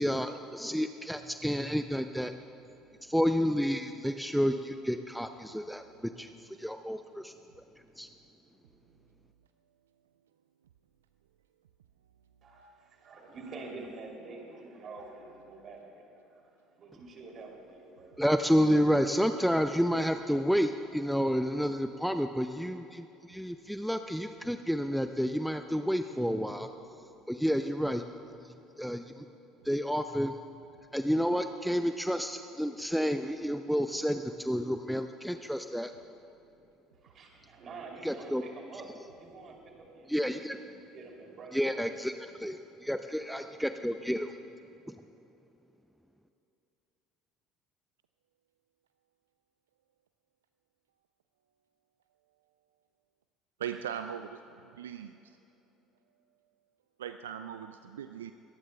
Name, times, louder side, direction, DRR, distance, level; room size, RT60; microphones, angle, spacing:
voice 1, 0.0-2.3 3.0-6.3 6.6-7.3 8.0-8.1 18.2-26.7 27.3-28.0 28.8-29.3 29.6-30.4 30.9-35.9 38.0-38.4 40.1-40.6 41.5-42.1 42.4-44.3, equal, ahead, 8 dB, 0.6 m, -30 dB
voice 2, 12.4-16.2 16.8-18.2 37.0-41.7 43.2-43.5, right 3 dB, 40° right, 0 dB, 3.2 m, -47 dB
voice 3, 53.6-55.1 57.0-58.3, right 9 dB, 75° right, 9 dB, 0.3 m, -39 dB
23.0 x 18.5 x 2.4 m, 3.0 s
figure-of-eight pair, 60°, 0 cm